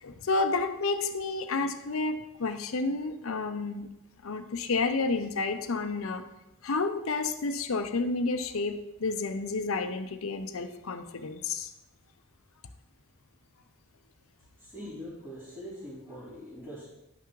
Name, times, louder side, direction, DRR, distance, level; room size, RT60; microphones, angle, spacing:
voice 1, 0.0-3.9 4.2-6.2 6.6-11.7, left 3 dB, 75° left, 8 dB, 0.6 m, -30 dB
voice 2, 14.4-16.9, equal, 15° right, -13 dB, 3.0 m, -43 dB
11.0 x 5.8 x 3.1 m, 0.92 s
head